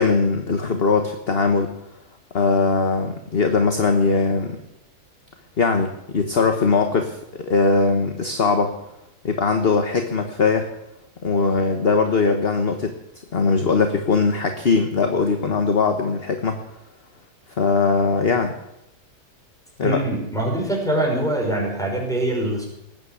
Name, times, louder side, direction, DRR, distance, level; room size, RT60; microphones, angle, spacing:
voice 1, 0.0-1.7 2.3-4.6 5.6-8.7 9.2-10.7 11.2-12.9 13.3-16.6 17.6-18.5 19.8-20.0, left 4 dB, 40° left, 6 dB, 1.4 m, -20 dB
voice 2, 19.8-22.7, right 1 dB, ahead, -1 dB, 5.6 m, -23 dB
19.5 x 9.0 x 8.4 m, 0.87 s
omnidirectional pair, 1.7 m